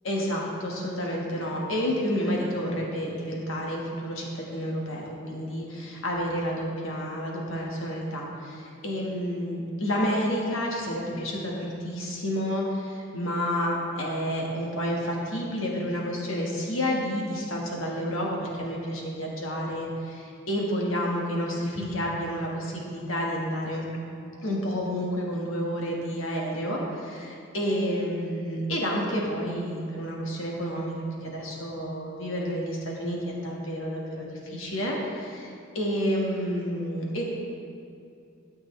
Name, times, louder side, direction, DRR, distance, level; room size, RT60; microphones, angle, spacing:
voice 1, 0.0-23.8 24.4-30.9 31.2-37.3, equal, 80° left, -2 dB, 1.4 m, -30 dB
12.5 x 6.4 x 3.2 m, 2.5 s
head